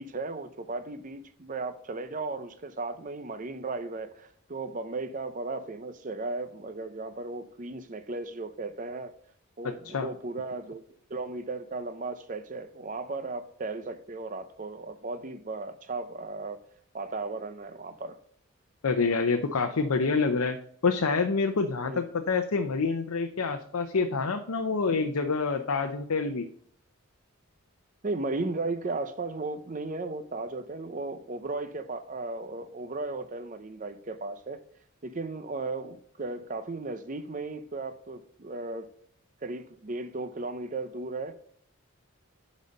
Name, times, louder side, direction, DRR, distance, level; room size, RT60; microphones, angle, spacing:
voice 1, 0.0-9.1 9.6-10.8 11.1-16.6 16.9-18.2 21.8-22.0 28.0-34.6 35.0-38.9 39.4-41.3, right 3 dB, 35° right, 0.6 m, -35 dB
voice 2, 9.6-10.1 18.8-20.6 20.8-26.5, left 4 dB, 85° left, 0.7 m, -27 dB
10.5 x 4.2 x 5.2 m
head